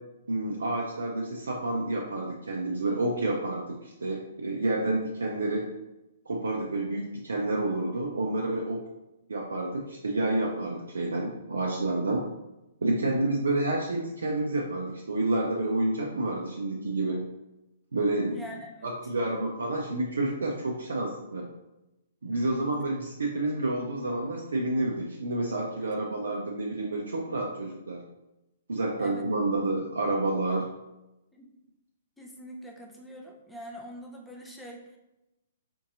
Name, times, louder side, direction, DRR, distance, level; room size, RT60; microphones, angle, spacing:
voice 1, 0.3-5.7 6.3-8.8 9.3-12.2 12.8-17.2 17.9-18.4 18.8-21.5 22.2-28.0 28.7-30.7, right 2 dB, 70° right, -1 dB, 0.5 m, -29 dB
voice 2, 13.0-13.4 18.3-19.0 22.3-22.7 25.8-26.1 29.0-29.2 31.3-31.5 32.2-35.0, equal, 5° left, -1 dB, 0.6 m, -44 dB
4.5 x 2.7 x 2.5 m, 0.95 s
figure-of-eight pair, 120°, 0 cm